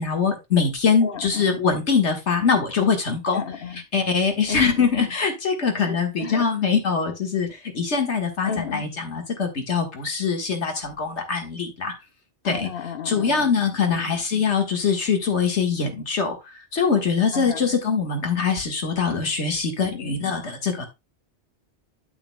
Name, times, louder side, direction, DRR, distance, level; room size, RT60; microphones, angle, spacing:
voice 1, 0.0-3.4 3.9-11.9 12.4-12.7 13.1-20.8, left 5 dB, 75° left, 1.9 m, -23 dB
voice 2, 1.0-1.6 3.3-3.8 4.5-5.0 5.9-6.5 8.4-8.9 12.4-13.5 13.9-14.1 17.3-17.8 19.8-20.2, left 6 dB, 55° left, 1.0 m, -33 dB
8.5 x 8.3 x 2.2 m
omnidirectional pair, 1.2 m